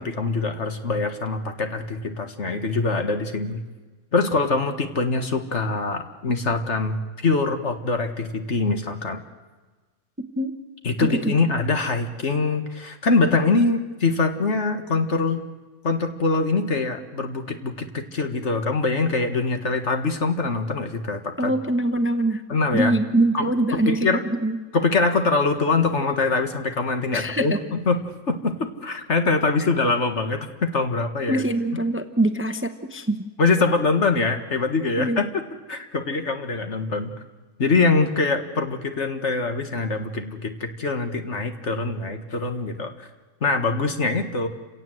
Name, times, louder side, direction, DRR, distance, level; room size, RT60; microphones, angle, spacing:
voice 1, 0.0-3.6 4.1-9.2 10.8-15.5 15.8-21.5 22.5-23.0 23.3-24.2 24.7-31.4 33.4-35.4 35.7-37.1 37.6-43.1 43.4-44.5, left 3 dB, 55° left, 6 dB, 2.0 m, -23 dB
voice 2, 21.4-22.4 22.7-24.6 27.1-27.6 31.3-33.2 35.0-35.2, right 1 dB, 10° right, 8 dB, 0.9 m, -23 dB
29.5 x 17.5 x 7.9 m, 1.3 s
omnidirectional pair, 1.5 m